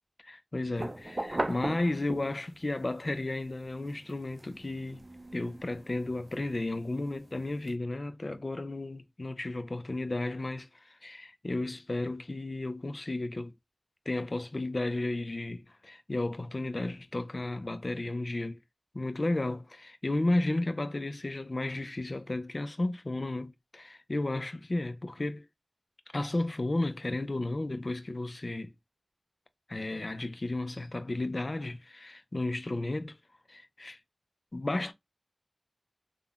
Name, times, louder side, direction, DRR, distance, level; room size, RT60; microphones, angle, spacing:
voice 1, 0.2-5.0 5.3-13.5 14.1-18.6 18.9-25.4 26.1-28.7 29.7-33.2 33.5-34.0 34.5-34.9, left 2 dB, 65° left, 0.4 m, -33 dB
sound 1, 0.7-2.6 3.1-7.7, right 2 dB, 60° right, 0.5 m, -39 dB
3.5 x 2.1 x 2.3 m
wide cardioid pair, 40°, 0 cm